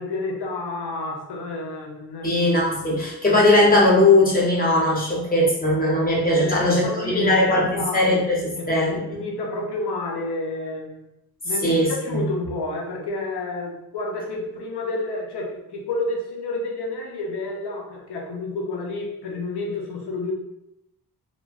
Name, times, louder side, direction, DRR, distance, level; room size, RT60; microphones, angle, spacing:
voice 1, 0.0-2.4 6.4-8.1 8.6-11.1 11.4-20.3, left 2 dB, 80° left, 0 dB, 0.7 m, -30 dB
voice 2, 2.2-9.0 11.6-12.2, left 1 dB, 20° left, -5 dB, 0.7 m, -19 dB
3.1 x 2.1 x 2.4 m, 0.85 s
wide cardioid pair, 150°, 40 cm